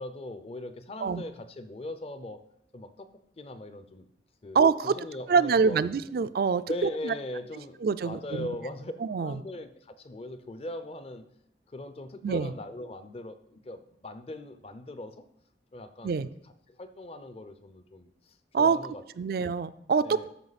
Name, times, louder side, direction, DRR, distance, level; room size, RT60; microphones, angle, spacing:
voice 1, 0.0-2.4 2.7-3.1 3.4-4.1 4.4-6.1 6.7-8.9 9.2-11.2 11.7-15.2 15.7-16.3 16.7-19.4 20.0-20.3, left 1 dB, 35° left, 11 dB, 0.5 m, -40 dB
voice 2, 4.5-4.9 5.3-6.6 7.0-7.1 7.8-8.5 9.0-9.4 12.2-12.5 16.0-16.3 18.5-18.8 19.2-20.3, right 5 dB, 55° right, 15 dB, 0.3 m, -25 dB
12.5 x 5.0 x 4.1 m, 0.74 s
head